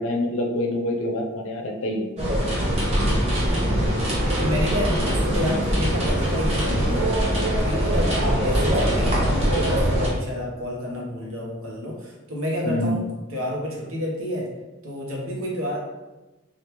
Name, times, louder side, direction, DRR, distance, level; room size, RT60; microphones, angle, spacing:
voice 1, 0.0-2.1 6.9-7.0 12.7-13.0, left 1 dB, 65° left, 1 dB, 0.5 m, -26 dB
sound 1, 2.2-10.1, equal, 30° right, 0.8 m, -22 dB
voice 2, 3.7-4.0 4.4-7.2 7.6-13.0 13.3-14.5 14.8-15.8, left 1 dB, 70° right, -2 dB, 0.9 m, -29 dB
3.4 x 2.4 x 2.9 m, 1.1 s
head